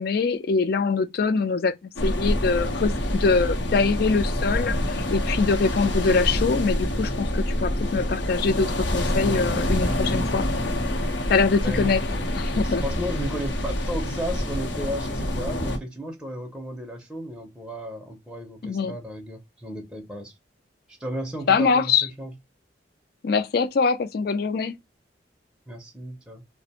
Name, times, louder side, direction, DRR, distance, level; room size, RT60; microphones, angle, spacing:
voice 1, 0.0-10.5 11.3-12.0 12.4-12.8 18.6-19.0 21.5-22.1 23.2-24.8, left 4 dB, 55° left, 0.4 m, -23 dB
sound 1, 2.0-15.8, left 1 dB, 80° left, 0.8 m, -26 dB
voice 2, 12.6-20.3 20.9-22.3 25.7-26.4, equal, 5° right, 0.5 m, -34 dB
2.4 x 2.1 x 2.7 m
head